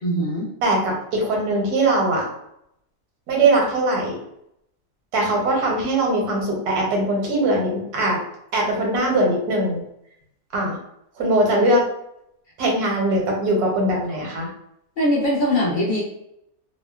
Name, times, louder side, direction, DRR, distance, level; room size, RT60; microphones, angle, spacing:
voice 1, 0.0-0.5 15.0-16.0, equal, 55° left, -4 dB, 0.6 m, -21 dB
voice 2, 0.6-2.3 3.3-4.2 5.1-8.2 8.5-9.8 10.5-10.8 11.2-11.8 12.6-14.5, right 1 dB, 80° right, -1 dB, 1.3 m, -21 dB
2.9 x 2.0 x 2.2 m, 0.77 s
omnidirectional pair, 1.7 m